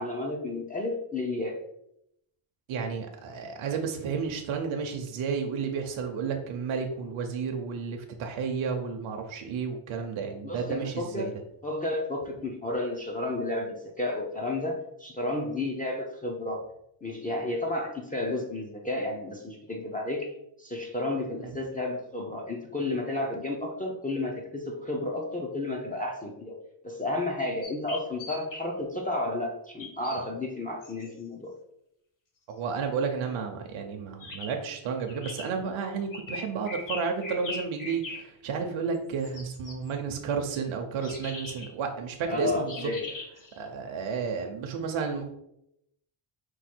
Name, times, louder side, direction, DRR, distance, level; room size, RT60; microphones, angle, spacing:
voice 1, 0.0-1.6 10.4-11.3 11.6-16.6 17.0-20.3 20.6-26.6 26.8-31.5 42.3-43.0, left 2 dB, 20° left, -1 dB, 0.4 m, -32 dB
voice 2, 2.7-11.3 21.4-21.5 32.5-42.9 43.6-45.3, right 5 dB, 70° right, 3 dB, 0.7 m, -32 dB
sound 1, 27.6-28.6 29.8-30.2 30.8-31.1 34.2-34.5 35.1-35.5 36.1-38.2 38.9-39.9 41.0-41.7 42.7-43.6, left 3 dB, 40° left, 0.9 m, -40 dB
4.6 x 2.3 x 4.3 m, 0.79 s
wide cardioid pair, 165°, 49 cm